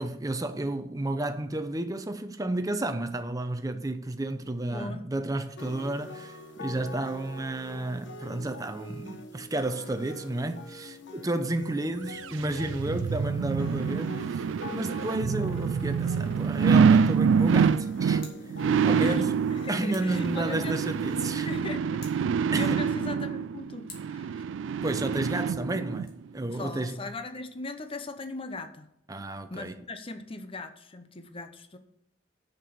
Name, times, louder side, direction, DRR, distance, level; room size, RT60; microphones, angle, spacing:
voice 1, 0.0-14.5 14.7-18.2 18.8-19.3 19.7-21.5 22.5-22.8 24.8-26.9 29.1-29.8, right 2 dB, 20° right, 0.7 m, -32 dB
voice 2, 4.7-5.1 12.9-13.0 18.9-20.8 21.4-24.4 26.5-28.9 29.5-31.8, left 2 dB, 30° left, 0.8 m, -39 dB
sound 1, 5.6-21.6, left 2 dB, 70° left, 1.1 m, -44 dB
sound 2, 12.2-26.1 26.5-26.6, right 6 dB, 80° right, 0.3 m, -26 dB
Scissors, 18.1-18.5 19.9-20.2 21.9-22.4 23.8-24.2 25.9-26.1, left 4 dB, 50° left, 2.5 m, -49 dB
7.3 x 6.8 x 7.0 m
head